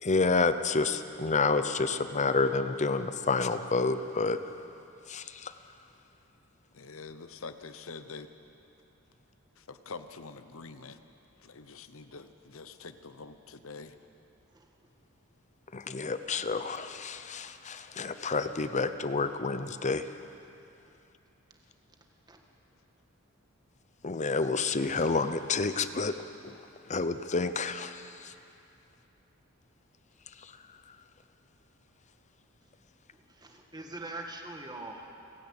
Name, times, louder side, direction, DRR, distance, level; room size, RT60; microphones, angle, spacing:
voice 1, 0.0-4.4 5.1-5.5 15.7-20.0 24.0-26.1 26.9-28.0 28.2-28.3, left 4 dB, 35° left, 11 dB, 0.7 m, -29 dB
voice 2, 6.7-8.3 9.6-11.0 11.4-13.9, left 4 dB, 70° left, 10 dB, 0.9 m, -45 dB
voice 3, 33.4-35.0, right 2 dB, 20° right, 2 dB, 1.5 m, -42 dB
30.0 x 10.0 x 8.7 m, 2.7 s
head